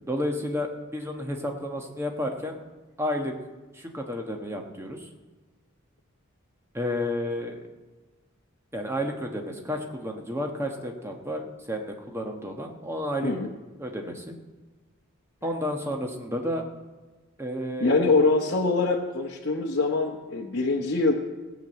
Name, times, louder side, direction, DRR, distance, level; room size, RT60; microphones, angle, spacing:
voice 1, 0.1-2.6 3.0-3.3 3.7-5.1 6.7-7.6 8.7-13.3 13.8-14.4 15.4-16.6 17.4-18.1, left 1 dB, 10° right, 2 dB, 1.2 m, -31 dB
voice 2, 17.8-21.1, left 3 dB, 50° left, -2 dB, 1.0 m, -24 dB
17.0 x 6.0 x 7.9 m, 1.2 s
head